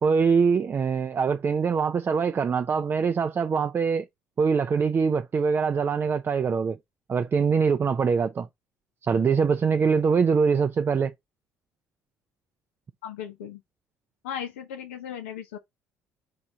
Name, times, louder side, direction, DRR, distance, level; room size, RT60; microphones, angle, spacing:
voice 1, 0.0-4.1 4.4-6.8 7.1-8.5 9.0-11.1, right 5 dB, 35° right, 0.4 m, -23 dB
voice 2, 13.0-13.6 14.2-15.6, left 9 dB, 85° left, 0.6 m, -36 dB
3.6 x 2.8 x 4.2 m
hypercardioid pair, 60°, 7 cm